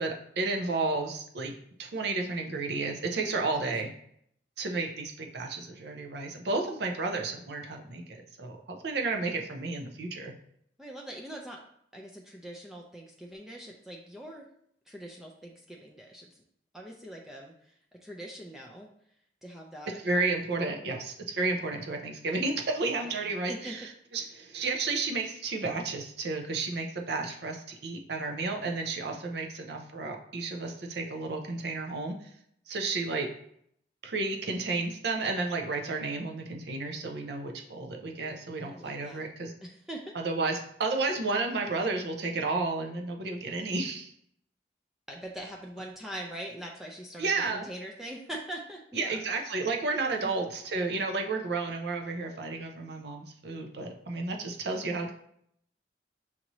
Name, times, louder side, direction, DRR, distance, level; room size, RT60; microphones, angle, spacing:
voice 1, 0.0-3.9 4.6-10.3 20.0-23.8 24.1-32.3 32.7-33.3 34.0-39.5 40.1-44.1 47.2-47.7 48.9-55.1, right 3 dB, 70° right, 3 dB, 0.6 m, -32 dB
voice 2, 3.2-3.8 10.8-11.6 11.9-14.5 14.9-16.4 16.7-18.9 19.4-20.0 23.0-23.2 23.5-23.8 38.6-39.3 39.6-40.2 45.1-49.5 50.2-50.3, right 1 dB, ahead, -1 dB, 0.4 m, -43 dB
5.8 x 2.7 x 3.0 m, 0.69 s
head